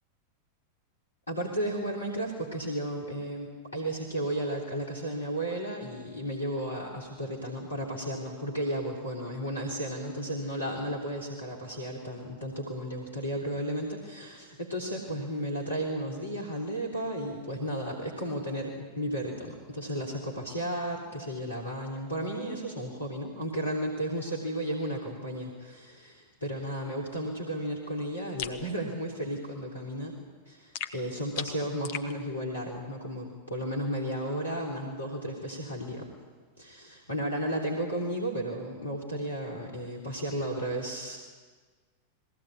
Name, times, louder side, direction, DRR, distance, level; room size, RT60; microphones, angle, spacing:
voice 1, 1.3-30.1 30.5-36.1 36.6-41.2, right 1 dB, 80° left, -2 dB, 3.3 m, -34 dB
sound 1, 28.4-28.6 30.7-32.1, left 9 dB, 50° left, 1.0 m, -37 dB
21.0 x 17.0 x 8.6 m, 1.5 s
figure-of-eight pair, 90°, 0 cm